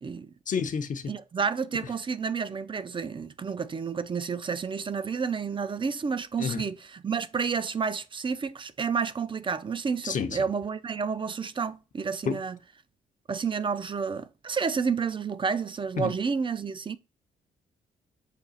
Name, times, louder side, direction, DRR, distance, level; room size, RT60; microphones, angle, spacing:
voice 1, 0.5-1.0 6.4-6.6 10.0-10.4 12.3-12.4 16.0-16.2, left 6 dB, 50° left, 0.7 m, -29 dB
voice 2, 1.1-12.6 13.3-17.0, right 5 dB, 30° right, 0.4 m, -30 dB
5.8 x 2.3 x 3.9 m
cardioid pair, 70°, 17 cm